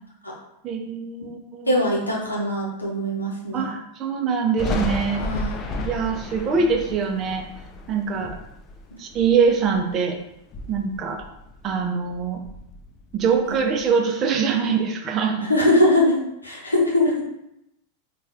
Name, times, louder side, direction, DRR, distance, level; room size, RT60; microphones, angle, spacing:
voice 1, 0.6-1.8 3.5-5.2 5.8-7.4 7.9-8.4 9.0-10.2 10.7-11.2 11.6-12.4 13.1-15.5, right 5 dB, 30° right, 4 dB, 0.5 m, -23 dB
voice 2, 1.7-3.7 5.2-5.6 13.5-13.6 15.4-17.2, left 1 dB, 80° left, -3 dB, 0.7 m, -22 dB
Thunder, 4.6-10.0 10.4-11.8 12.1-13.8, left 2 dB, 30° left, 0.3 m, -33 dB
4.0 x 2.3 x 2.4 m, 0.82 s
figure-of-eight pair, 90°, 0 cm